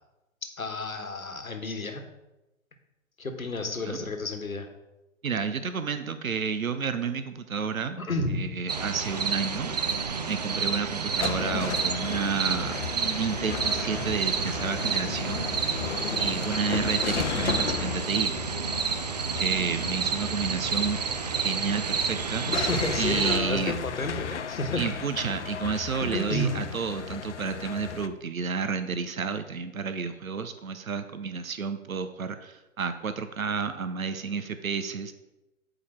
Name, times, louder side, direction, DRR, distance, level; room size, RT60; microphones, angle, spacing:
voice 1, 0.6-2.0 3.2-4.7 8.0-8.4 22.5-24.8 26.0-26.7, left 2 dB, 85° left, 6 dB, 1.3 m, -31 dB
voice 2, 5.2-9.7 10.3-15.4 16.2-18.3 19.4-21.0 21.4-22.5 23.0-23.7 24.8-35.1, right 5 dB, 80° right, 10 dB, 0.7 m, -31 dB
sound 1, 8.7-23.4, right 5 dB, 35° right, 0.4 m, -30 dB
sound 2, 10.7-28.1, left 8 dB, 60° left, 0.6 m, -35 dB
8.1 x 4.9 x 4.4 m, 0.98 s
figure-of-eight pair, 125°, 41 cm